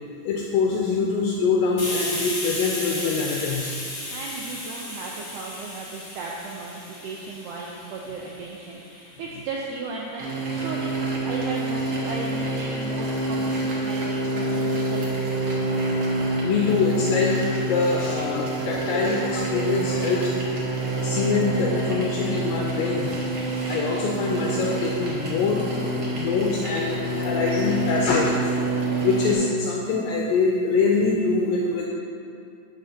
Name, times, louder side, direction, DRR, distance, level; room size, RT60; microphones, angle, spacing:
voice 1, 0.2-3.7 16.4-23.1 23.7-25.7 26.1-28.5 29.0-31.8, left 4 dB, 80° left, -1 dB, 2.1 m, -24 dB
Hiss, 1.8-9.2, left 1 dB, 40° left, 2.3 m, -34 dB
voice 2, 4.1-10.9 11.2-15.2 15.5-15.6, right 4 dB, 85° right, -2 dB, 1.8 m, -36 dB
sound 1, 10.2-29.3, right 2 dB, 70° right, 1.2 m, -27 dB
12.0 x 5.7 x 2.8 m, 2.5 s
omnidirectional pair, 4.2 m